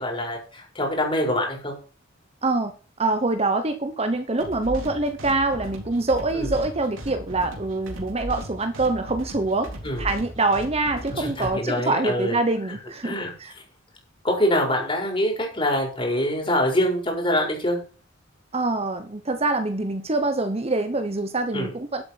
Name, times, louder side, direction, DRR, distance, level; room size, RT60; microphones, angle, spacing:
voice 1, 0.0-1.7 6.3-6.5 9.8-10.1 11.1-12.4 13.0-13.3 14.2-17.8 21.5-21.7, left 1 dB, 25° left, 1 dB, 5.1 m, -24 dB
voice 2, 2.4-2.7 3.0-9.7 10.0-13.5 18.5-22.0, right 2 dB, 30° right, 9 dB, 1.0 m, -25 dB
sound 1, 4.4-11.5, equal, 85° right, 3.8 m, -37 dB
12.0 x 8.2 x 4.6 m, 0.38 s
head